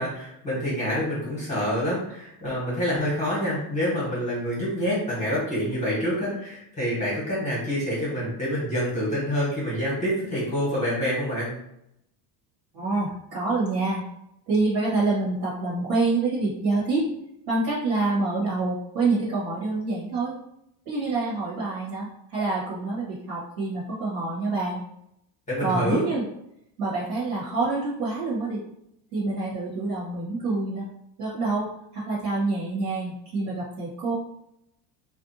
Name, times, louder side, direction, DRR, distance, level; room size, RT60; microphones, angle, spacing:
voice 1, 0.0-11.5 25.5-26.1, equal, 15° left, -8 dB, 1.2 m, -27 dB
voice 2, 12.7-14.0 14.5-17.1 17.5-20.3 20.8-24.8 25.6-26.2 26.8-28.6 29.1-30.8 31.2-31.7 31.9-34.1, right 3 dB, 60° right, -7 dB, 1.3 m, -26 dB
2.6 x 2.2 x 2.6 m, 0.78 s
cardioid pair, 135°, 42 cm